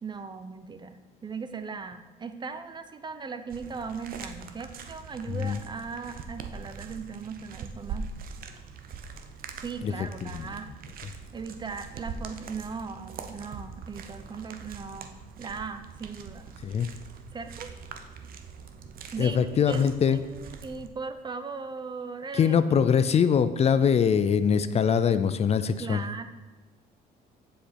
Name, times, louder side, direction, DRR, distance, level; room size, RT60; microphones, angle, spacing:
voice 1, 0.0-8.1 9.6-10.7 11.3-15.1 15.4-16.5 17.3-17.7 19.1-19.8 20.1-22.6 22.9-23.0 25.8-26.3, right 5 dB, 25° right, 10 dB, 0.7 m, -38 dB
sound 1, 3.5-20.9, right 5 dB, 60° right, 0.9 m, -43 dB
voice 2, 5.3-5.6 9.8-10.5 16.6-16.9 19.2-20.2 22.3-26.0, left 7 dB, 40° left, 12 dB, 0.5 m, -23 dB
7.6 x 6.9 x 5.9 m, 1.2 s
cardioid pair, 110°, 17 cm